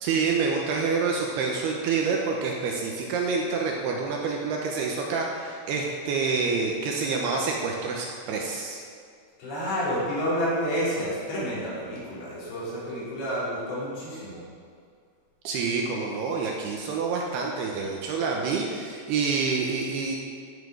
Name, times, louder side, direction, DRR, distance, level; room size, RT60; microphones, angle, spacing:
voice 1, 0.0-8.8 15.4-20.2, right 4 dB, 70° right, 0 dB, 2.7 m, -27 dB
voice 2, 9.4-14.4, equal, 70° left, -9 dB, 6.2 m, -29 dB
14.5 x 7.4 x 6.5 m, 2.2 s
omnidirectional pair, 5.3 m